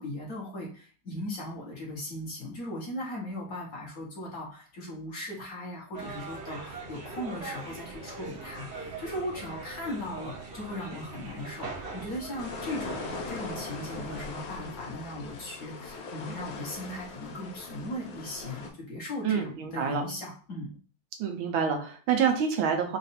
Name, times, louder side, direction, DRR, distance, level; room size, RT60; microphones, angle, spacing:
voice 1, 0.0-20.7, left 1 dB, 50° left, -3 dB, 1.5 m, -38 dB
sound 1, 5.9-14.3, right 3 dB, 45° right, 0.9 m, -42 dB
sound 2, 12.4-18.7, left 3 dB, 85° left, 1.6 m, -40 dB
voice 2, 19.2-20.1 21.2-23.0, right 7 dB, 80° right, 4 dB, 1.5 m, -27 dB
4.2 x 2.5 x 4.0 m, 0.42 s
omnidirectional pair, 2.2 m